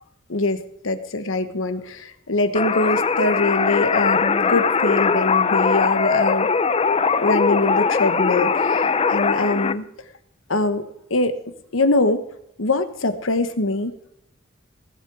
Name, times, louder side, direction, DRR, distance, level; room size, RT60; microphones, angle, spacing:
voice 1, 0.3-6.5 7.2-9.9 10.5-10.8 11.1-11.4 11.7-12.2 12.6-13.9, left 2 dB, 80° left, 10 dB, 1.3 m, -23 dB
sound 1, 2.5-9.7, left 5 dB, 30° left, 0.5 m, -20 dB
18.5 x 7.9 x 4.8 m, 0.76 s
head